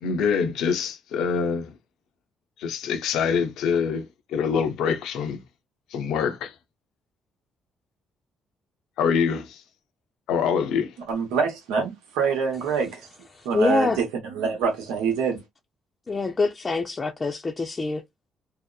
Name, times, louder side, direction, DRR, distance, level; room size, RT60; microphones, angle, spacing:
voice 1, 0.0-1.7 2.6-5.4 5.9-6.5 9.0-9.6 10.3-10.9, left 6 dB, 80° left, 0.5 m, -25 dB
voice 2, 11.1-13.0 13.4-15.4, right 5 dB, 90° right, 0.9 m, -25 dB
voice 3, 13.3-14.0 16.1-18.0, left 3 dB, 30° left, 0.5 m, -25 dB
2.7 x 2.0 x 2.3 m
supercardioid pair, 65°, 0 cm